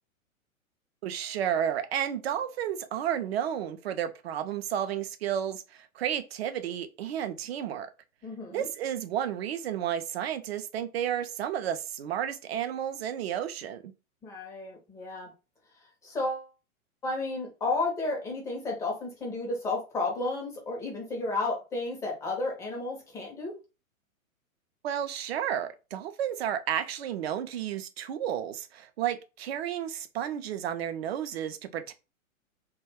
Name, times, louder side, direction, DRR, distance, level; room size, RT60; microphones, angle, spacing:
voice 1, 1.0-7.9 8.5-13.9 24.8-31.9, right 10 dB, 50° right, 0.4 m, -32 dB
voice 2, 8.2-8.7 14.2-15.3 16.0-16.5 17.0-23.5, left 2 dB, 10° left, 0.4 m, -32 dB
2.2 x 2.2 x 3.3 m
figure-of-eight pair, 110°, 42 cm